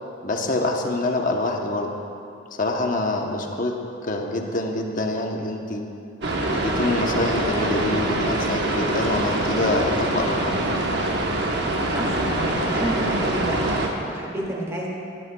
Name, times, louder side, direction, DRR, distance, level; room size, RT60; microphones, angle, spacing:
voice 1, 0.2-1.9 2.6-3.8 4.0-5.8 6.5-10.5, left 2 dB, 40° left, 1 dB, 0.9 m, -25 dB
sound 1, 6.2-13.9, right 1 dB, 55° right, 1.1 m, -24 dB
voice 2, 11.9-14.9, right 1 dB, 15° right, -3 dB, 1.8 m, -30 dB
19.0 x 10.5 x 2.3 m, 2.7 s
head